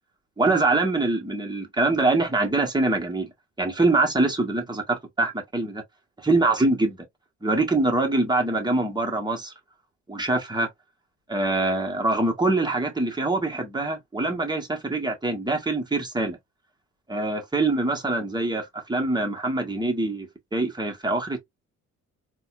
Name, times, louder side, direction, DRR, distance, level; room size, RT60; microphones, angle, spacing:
voice 1, 0.4-3.3 3.6-5.8 6.2-7.0 7.4-9.5 10.1-10.7 11.3-16.4 17.1-21.4, right 2 dB, 15° right, 1.5 m, -24 dB
4.0 x 2.5 x 2.4 m
cardioid pair, 90°, 30 cm